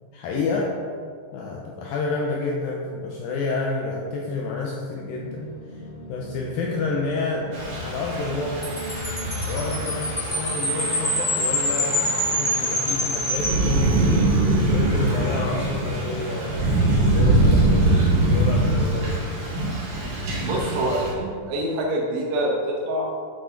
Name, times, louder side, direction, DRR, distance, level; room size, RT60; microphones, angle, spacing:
voice 1, 0.1-0.8 1.3-5.8 6.1-16.8 17.1-19.2, left 3 dB, 80° left, -1 dB, 2.1 m, -29 dB
sound 1, 5.1-19.5, right 1 dB, 65° left, 3.0 m, -39 dB
Thunder / Rain, 7.5-21.1, right 2 dB, 60° right, 1.5 m, -23 dB
Wind chime, 8.6-14.3, left 1 dB, 30° left, 0.8 m, -26 dB
voice 2, 20.4-23.0, right 1 dB, 80° right, -2 dB, 3.4 m, -25 dB
8.5 x 6.2 x 3.7 m, 2.1 s
omnidirectional pair, 4.8 m